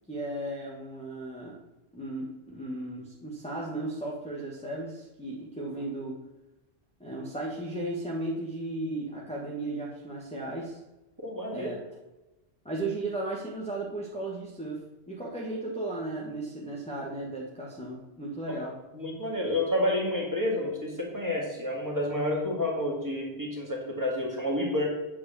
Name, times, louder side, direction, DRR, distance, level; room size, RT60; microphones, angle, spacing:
voice 1, 0.1-1.6 1.9-6.2 7.0-10.8 11.5-11.8 12.6-18.8, right 2 dB, 5° left, -5 dB, 1.3 m, -35 dB
voice 2, 11.2-11.7 18.5-18.6 18.9-24.9, left 1 dB, 15° right, -2 dB, 2.3 m, -29 dB
8.3 x 4.8 x 6.9 m, 1.0 s
omnidirectional pair, 1.1 m